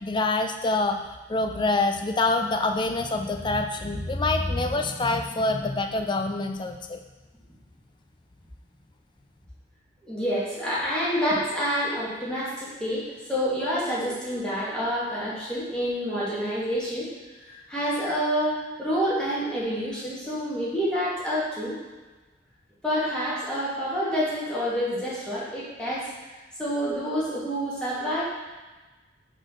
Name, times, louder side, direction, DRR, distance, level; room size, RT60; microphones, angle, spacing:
voice 1, 0.0-1.0 1.3-7.0, left 2 dB, 25° left, 5 dB, 0.4 m, -26 dB
voice 2, 10.0-13.0 13.3-17.1 17.4-21.8 22.8-26.0 26.6-28.2, equal, 5° left, -9 dB, 2.1 m, -28 dB
5.0 x 4.4 x 5.9 m, 1.2 s
head